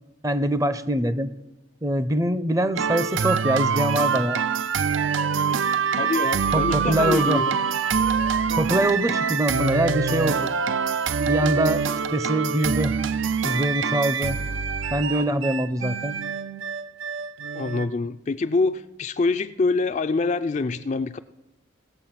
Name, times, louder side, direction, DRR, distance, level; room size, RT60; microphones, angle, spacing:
voice 1, 0.2-1.3 1.8-4.4 6.5-7.4 8.6-10.5 11.3-11.8 12.1-13.0 13.4-14.4 14.9-16.2, right 1 dB, 15° right, 0.5 m, -23 dB
sound 1, 2.7-17.9, right 6 dB, 80° right, 0.5 m, -25 dB
voice 2, 6.0-7.6 17.5-21.2, left 3 dB, 35° left, 0.4 m, -25 dB
18.0 x 7.3 x 5.8 m
head